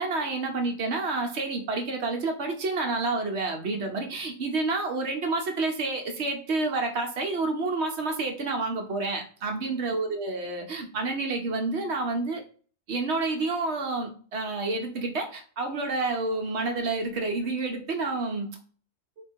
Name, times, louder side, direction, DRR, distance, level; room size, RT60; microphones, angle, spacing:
voice 1, 0.0-12.4 12.9-18.5, right 3 dB, 60° right, 4 dB, 1.0 m, -29 dB
4.3 x 2.3 x 4.3 m, 0.42 s
omnidirectional pair, 1.4 m